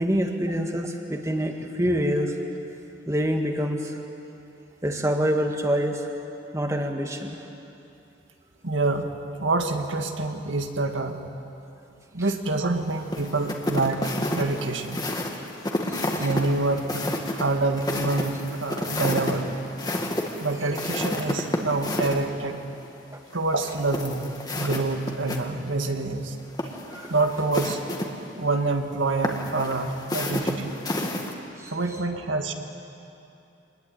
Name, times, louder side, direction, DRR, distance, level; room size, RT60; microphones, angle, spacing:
voice 1, 0.0-2.4 3.1-4.0 4.8-6.1 6.5-7.4 15.9-16.3 23.1-23.2 26.9-27.1 31.6-31.7, equal, 15° right, 3 dB, 1.8 m, -26 dB
voice 2, 8.6-9.1 9.4-11.2 12.1-15.0 15.9-16.9 17.3-19.5 20.4-22.6 23.3-26.4 27.1-27.9 28.4-30.7 31.7-32.5, right 3 dB, 90° right, 5 dB, 2.0 m, -26 dB
sound 1, 13.1-22.2 23.5-25.4 25.7-25.8 26.4-28.1 29.2-31.3, left 1 dB, 20° left, 1.9 m, -30 dB
26.0 x 20.5 x 9.2 m, 2.8 s
head